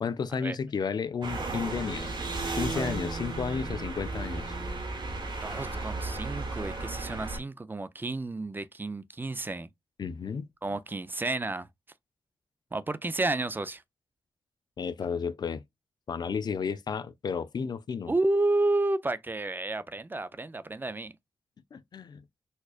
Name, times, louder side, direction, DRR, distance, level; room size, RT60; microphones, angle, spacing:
voice 1, 0.0-2.1 2.6-4.4 10.0-10.5 14.8-15.6 16.1-18.1 21.7-22.2, left 6 dB, 55° left, 0.4 m, -32 dB
sound 1, 1.2-7.4, right 3 dB, 65° right, 1.2 m, -34 dB
voice 2, 5.4-9.7 10.6-11.7 12.7-13.8 18.1-21.1, right 2 dB, 25° right, 0.4 m, -31 dB
4.3 x 2.4 x 2.4 m
cardioid pair, 70°, 8 cm